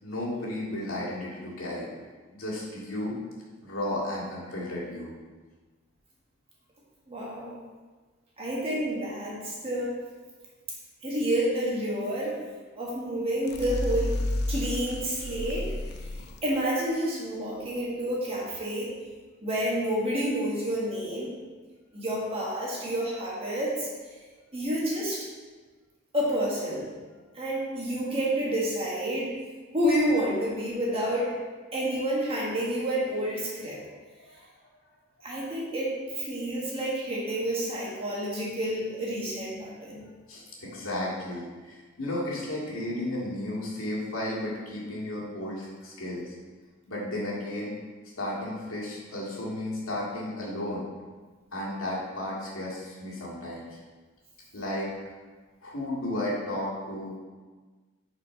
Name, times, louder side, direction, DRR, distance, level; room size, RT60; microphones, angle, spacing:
voice 1, 0.0-1.9 2.3-3.2 3.6-5.1 34.2-34.5 40.3-46.3 46.9-47.7 48.2-50.8 51.5-53.8 54.5-54.9 55.6-57.2, left 1 dB, 80° left, -5 dB, 2.1 m, -33 dB
voice 2, 7.1-7.6 8.4-9.9 11.0-12.3 12.8-14.1 14.5-15.7 16.4-18.9 19.4-21.3 21.9-23.9 24.5-25.2 26.1-26.8 27.3-29.3 29.7-31.3 31.7-33.8 35.2-40.0, right 1 dB, 30° right, -5 dB, 1.5 m, -29 dB
sound 1, 13.4-16.4, left 1 dB, 50° left, 0.5 m, -31 dB
6.0 x 4.5 x 5.4 m, 1.4 s
head